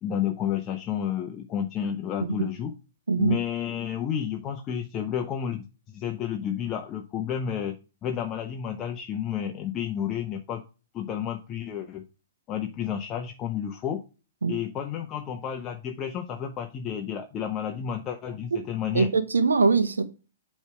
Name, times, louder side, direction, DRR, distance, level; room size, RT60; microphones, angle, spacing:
voice 1, 0.0-2.7 3.2-5.6 5.9-7.7 8.0-10.6 10.9-12.0 12.5-14.0 14.5-19.1, left 9 dB, 25° left, 0.7 m, -31 dB
voice 2, 18.9-20.0, right 4 dB, 80° right, 0.9 m, -22 dB
8.0 x 3.2 x 4.8 m
figure-of-eight pair, 115°, 0 cm